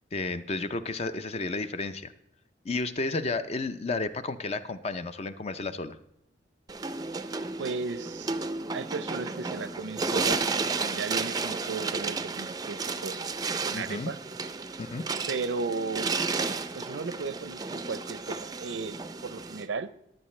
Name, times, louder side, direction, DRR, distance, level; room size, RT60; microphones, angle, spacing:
voice 1, 0.1-2.1 2.6-6.0 13.7-14.1 14.8-15.1, left 3 dB, 35° left, 12 dB, 0.5 m, -32 dB
sound 1, 6.7-19.7, right 4 dB, 20° right, 0.4 m, -32 dB
voice 2, 7.6-8.3 8.7-13.2 13.6-14.2 15.3-16.1 16.7-19.9, right 4 dB, 80° right, 14 dB, 0.6 m, -35 dB
14.5 x 10.5 x 3.2 m, 0.78 s
head